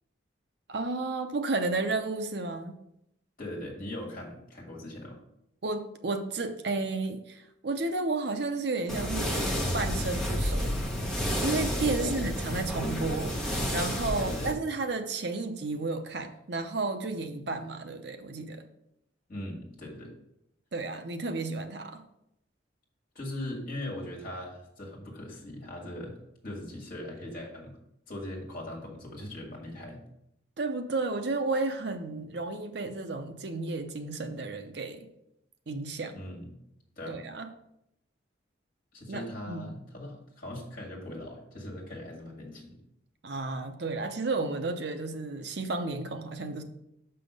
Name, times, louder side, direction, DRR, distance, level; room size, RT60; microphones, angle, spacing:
voice 1, 0.7-2.8 5.6-9.4 9.7-10.7 11.4-13.4 13.7-18.7 20.7-22.0 30.6-35.1 35.7-36.2 37.1-37.5 39.1-39.7 43.2-46.6, right 3 dB, 60° right, 7 dB, 0.7 m, -32 dB
voice 2, 3.4-5.2 12.0-12.3 14.2-14.6 19.3-20.1 23.1-26.1 26.4-27.7 28.1-30.0 36.1-36.6 37.0-37.2 38.9-42.8, left 1 dB, 45° left, -1 dB, 2.1 m, -40 dB
sound 1, 8.9-14.5, equal, ahead, 1.0 m, -30 dB
6.0 x 5.7 x 5.3 m, 0.79 s
head